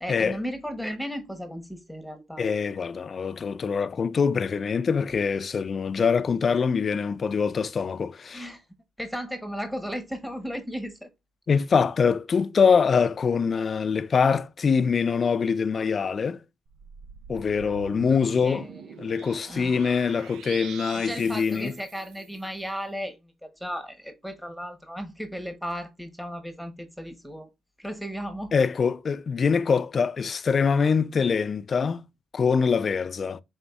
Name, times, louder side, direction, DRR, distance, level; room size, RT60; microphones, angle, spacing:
voice 1, 0.0-2.4 8.3-8.6 9.0-11.1 18.1-18.8 19.5-19.8 20.9-23.3 23.6-27.5 27.8-28.5, equal, ahead, 0.9 m, -35 dB
voice 2, 2.4-8.5 11.5-16.4 17.3-18.6 19.0-21.7 28.5-32.0 32.3-33.4, left 5 dB, 45° left, 0.4 m, -24 dB
sound 1, 16.7-22.5, right 8 dB, 85° right, 0.4 m, -44 dB
5.1 x 3.5 x 2.3 m
cardioid pair, 90°, 0 cm